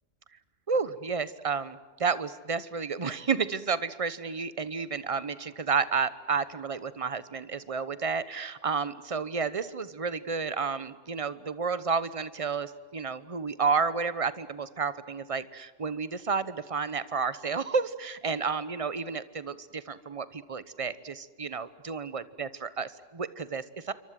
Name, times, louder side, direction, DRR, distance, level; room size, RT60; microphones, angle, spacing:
voice 1, 0.7-23.9, right 5 dB, 30° right, 15 dB, 1.0 m, -31 dB
27.5 x 24.0 x 7.7 m, 1.4 s
omnidirectional pair, 1.3 m